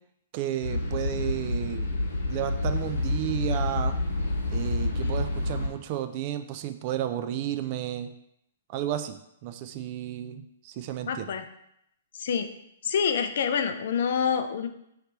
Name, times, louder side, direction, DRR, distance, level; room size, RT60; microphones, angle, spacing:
voice 1, 0.3-1.9 2.3-4.0 4.5-8.1 8.7-9.2 9.4-11.3, right 11 dB, 45° right, 9 dB, 0.4 m, -32 dB
sound 1, 0.6-5.7, left 2 dB, 80° left, 1.0 m, -28 dB
voice 2, 11.1-11.4 12.1-12.5 12.8-14.7, left 7 dB, 65° left, 8 dB, 0.4 m, -27 dB
3.2 x 2.9 x 4.4 m, 0.76 s
hypercardioid pair, 125°, 0 cm